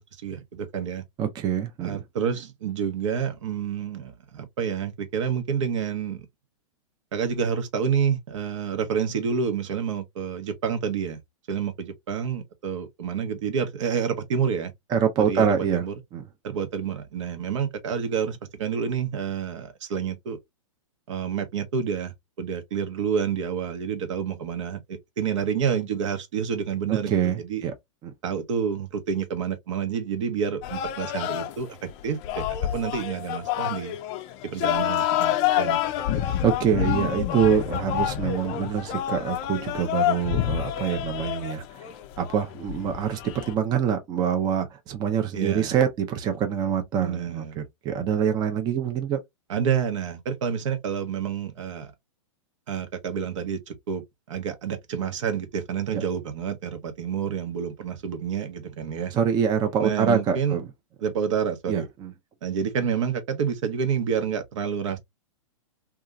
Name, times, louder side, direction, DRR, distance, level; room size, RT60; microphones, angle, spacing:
voice 1, 0.0-1.0 1.8-6.3 7.1-11.2 11.5-14.7 15.3-15.9 16.4-20.4 21.1-27.6 28.2-34.0 34.4-36.1 45.3-45.7 47.0-47.6 49.5-51.9 52.7-59.1 59.8-60.6 61.0-61.9 62.4-65.0, right 7 dB, 65° right, 0.9 m, -29 dB
voice 2, 1.2-2.0 14.9-15.8 16.1-16.2 26.9-27.7 28.0-28.1 36.4-41.8 42.2-49.2 59.1-60.7 61.7-62.1, right 8 dB, 25° right, 0.5 m, -25 dB
sound 1, 30.6-43.5, left 11 dB, 35° left, 0.4 m, -28 dB
2.8 x 2.4 x 2.3 m
hypercardioid pair, 125°, 17 cm